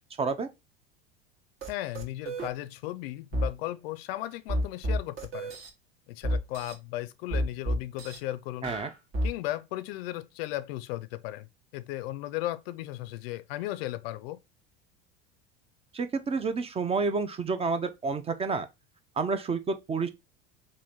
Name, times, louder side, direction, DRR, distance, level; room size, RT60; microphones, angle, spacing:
voice 1, 0.2-0.5 8.6-8.9 15.9-18.7 19.2-20.1, right 4 dB, 20° right, 0.4 m, -29 dB
sound 1, 1.6-1.7 1.9-2.5 3.3-3.5 4.5-5.7 6.2-6.7 7.3-8.2 8.6-9.3, equal, 40° right, 1.1 m, -30 dB
voice 2, 1.7-5.5 6.1-8.7 9.2-11.5 11.7-14.4, left 15 dB, 65° left, 0.5 m, -36 dB
3.0 x 2.6 x 3.9 m
hypercardioid pair, 85°, 32 cm